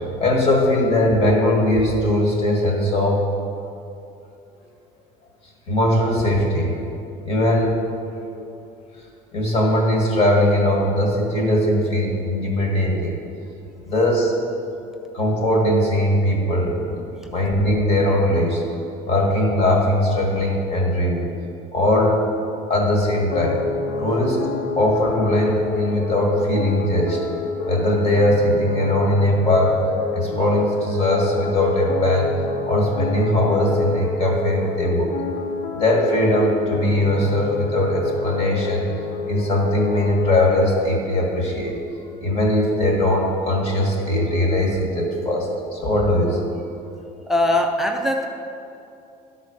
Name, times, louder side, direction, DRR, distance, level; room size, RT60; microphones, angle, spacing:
voice 1, 0.2-3.2 5.7-6.8 7.2-7.8 8.3-8.4 9.3-13.2 13.9-14.3 15.1-18.6 19.1-21.3 21.7-22.2 22.7-23.6 24.0-24.4 24.8-27.2 27.7-29.8 30.1-32.3 32.7-35.1 35.7-38.9 39.3-41.8 42.2-46.4, left 1 dB, 40° left, 0 dB, 1.6 m, -20 dB
sound 1, 23.3-40.5, left 4 dB, 75° left, 0.6 m, -28 dB
voice 2, 47.2-48.3, left 1 dB, ahead, 3 dB, 0.4 m, -21 dB
12.0 x 4.3 x 6.5 m, 2.7 s
cardioid pair, 175°, 16 cm